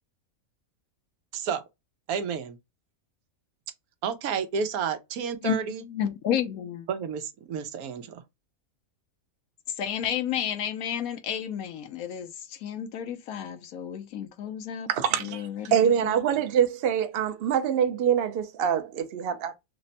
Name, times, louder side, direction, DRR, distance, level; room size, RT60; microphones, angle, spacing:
voice 1, 2.1-2.6 4.0-5.8 6.9-8.2, right 6 dB, 90° right, 1.1 m, -31 dB
voice 2, 5.8-6.9 9.8-14.9 15.2-15.7 16.0-16.1, left 9 dB, 80° left, 1.1 m, -31 dB
voice 3, 14.9-19.5, right 8 dB, 55° right, 0.7 m, -25 dB
3.4 x 2.1 x 3.8 m
omnidirectional pair, 1.5 m